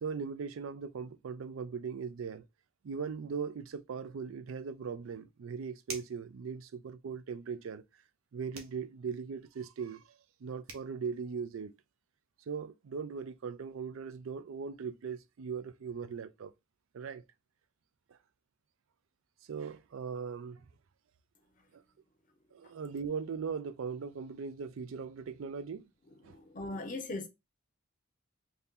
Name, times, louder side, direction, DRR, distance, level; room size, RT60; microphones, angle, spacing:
voice 1, 0.0-2.5 2.8-7.8 8.3-10.1 10.4-11.7 12.5-16.5 16.9-17.2 18.1-18.2 19.5-20.7 21.7-21.8 22.5-25.9 26.2-26.4, right 6 dB, 70° right, 0.4 m, -39 dB
sound 1, 5.9-6.3 8.5-8.8 10.3-10.4 10.7-10.9, right 4 dB, 85° right, 0.8 m, -44 dB
voice 2, 26.3-27.3, left 2 dB, 40° left, 0.6 m, -39 dB
2.8 x 2.7 x 3.6 m
head